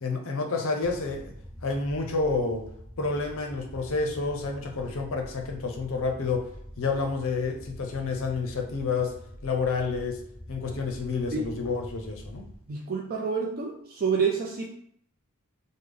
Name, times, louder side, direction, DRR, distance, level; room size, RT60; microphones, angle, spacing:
voice 1, 0.0-1.3 1.6-2.6 3.0-6.5 6.8-9.1 9.4-10.2 10.5-12.4, left 4 dB, 60° left, 3 dB, 0.6 m, -29 dB
sound 1, 0.8-12.6, equal, ahead, 0.6 m, -45 dB
voice 2, 12.7-14.7, right 5 dB, 40° right, -1 dB, 0.4 m, -28 dB
3.4 x 2.1 x 3.4 m, 0.68 s
head